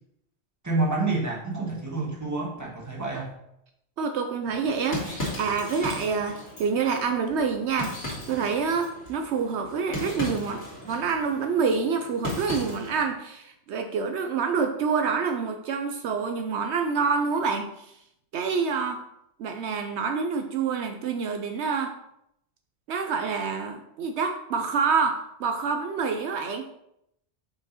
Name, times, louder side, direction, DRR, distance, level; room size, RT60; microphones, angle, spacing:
voice 1, 0.6-3.3, right 3 dB, 15° right, -3 dB, 1.4 m, -28 dB
voice 2, 4.0-17.9 18.3-19.0 19.4-22.0 22.9-26.7, right 5 dB, 75° right, 5 dB, 0.8 m, -27 dB
sound 1, 4.4-13.1, left 1 dB, 85° left, 2.3 m, -37 dB
5.4 x 4.8 x 4.1 m, 0.78 s
omnidirectional pair, 1.2 m